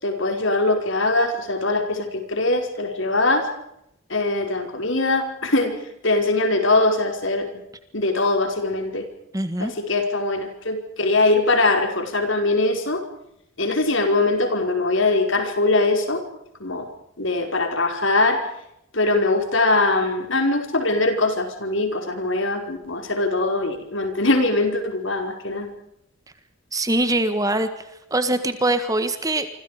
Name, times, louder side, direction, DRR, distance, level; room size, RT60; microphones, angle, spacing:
voice 1, 0.0-3.5 4.1-7.6 7.9-9.1 9.6-13.0 13.6-16.2 16.6-16.9 17.2-18.4 18.9-25.7, left 2 dB, 65° left, 5 dB, 4.9 m, -22 dB
voice 2, 9.3-9.7 26.7-27.7 28.1-29.5, right 2 dB, 15° right, 10 dB, 1.6 m, -22 dB
27.5 x 25.5 x 5.1 m, 0.80 s
head